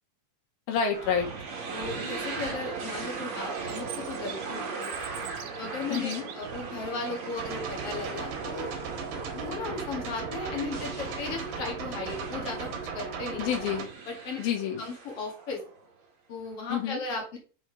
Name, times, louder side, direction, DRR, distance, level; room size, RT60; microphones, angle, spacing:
voice 1, 0.7-1.3 5.9-6.2 13.4-13.9 14.4-14.9 16.7-17.0, left 7 dB, 80° left, 3 dB, 3.4 m, -28 dB
sound 1, 0.9-15.8, right 4 dB, 50° right, 3.1 m, -39 dB
voice 2, 1.7-4.9 5.6-8.7 9.3-13.5 14.1-14.4 14.8-15.6 16.3-17.4, left 3 dB, 45° left, 1 dB, 2.5 m, -36 dB
Chirp tweet, 3.6-6.5, right 12 dB, 85° right, 2.6 m, -44 dB
sound 2, 7.4-13.8, right 5 dB, 70° right, 3.1 m, -37 dB
6.4 x 6.2 x 4.8 m, 0.37 s
omnidirectional pair, 4.3 m